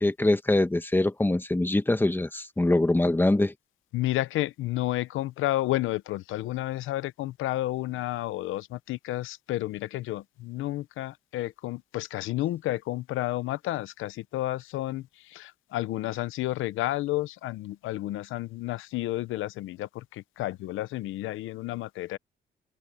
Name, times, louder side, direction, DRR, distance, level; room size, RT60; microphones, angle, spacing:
voice 1, 0.0-3.5, left 2 dB, 10° left, 1.5 m, -23 dB
voice 2, 3.9-22.2, left 16 dB, 90° left, 0.9 m, -31 dB
cardioid pair, 90°, 20 cm